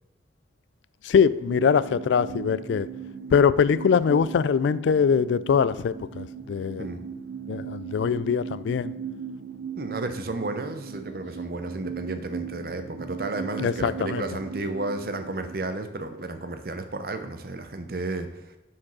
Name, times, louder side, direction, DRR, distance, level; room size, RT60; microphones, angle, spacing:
voice 1, 1.0-2.9 3.3-6.9 7.5-8.9 13.6-14.2, left 6 dB, 85° left, 0.3 m, -22 dB
sound 1, 1.4-15.5, right 6 dB, 90° right, 0.6 m, -38 dB
voice 2, 9.8-18.4, right 2 dB, 55° right, 0.7 m, -32 dB
7.2 x 4.8 x 6.1 m
head